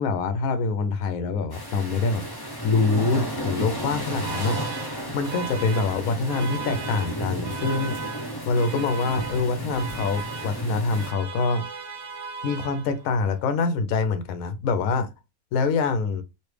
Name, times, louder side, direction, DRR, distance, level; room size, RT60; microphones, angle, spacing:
voice 1, 0.0-2.3 2.6-4.6 5.1-11.6 12.4-15.1 15.5-16.2, left 4 dB, 80° left, 1.0 m, -25 dB
sound 1, 1.5-11.1, equal, 25° left, 0.5 m, -33 dB
Alarm, 3.8-13.2, right 5 dB, 80° right, 1.0 m, -38 dB
3.1 x 2.6 x 3.2 m
omnidirectional pair, 1.5 m